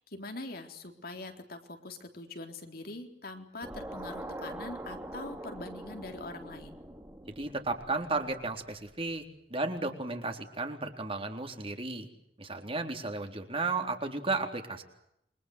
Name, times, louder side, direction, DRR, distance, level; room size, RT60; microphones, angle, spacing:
voice 1, 0.0-6.8, left 2 dB, 60° left, 5 dB, 3.9 m, -43 dB
sound 1, 3.6-8.9, right 1 dB, 15° right, 3.1 m, -43 dB
voice 2, 7.3-9.2 9.5-12.1 12.4-14.8, right 3 dB, 35° right, 5 dB, 3.8 m, -34 dB
29.0 x 24.0 x 8.1 m, 0.78 s
head